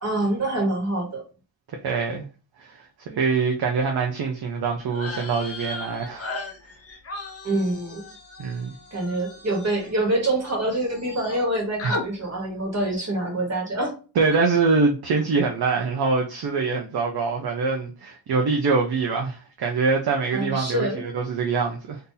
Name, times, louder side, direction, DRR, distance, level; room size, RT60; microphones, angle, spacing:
voice 1, 0.0-1.2 7.4-8.1 8.9-13.9 20.3-21.0, right 1 dB, 30° right, 1.4 m, -26 dB
voice 2, 1.8-2.3 2.6-6.3 8.4-8.7 11.8-11.9 14.2-22.0, right 4 dB, 50° right, 0.6 m, -24 dB
sound 1, 4.9-10.5 10.8-11.5 11.8-12.1, left 2 dB, 30° left, 0.7 m, -36 dB
2.7 x 2.6 x 3.8 m
wide cardioid pair, 130°, 49 cm